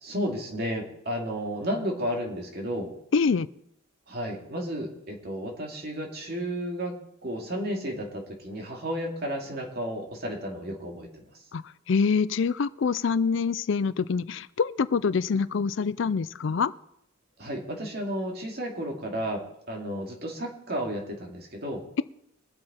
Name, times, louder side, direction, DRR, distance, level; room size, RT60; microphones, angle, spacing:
voice 1, 0.0-2.9 4.1-6.9 7.2-11.2 17.4-21.8, equal, 50° right, 1 dB, 2.4 m, -32 dB
voice 2, 3.1-3.5 11.5-11.6 11.9-16.7, left 5 dB, 65° left, 16 dB, 0.4 m, -25 dB
22.5 x 7.7 x 4.3 m, 0.77 s
head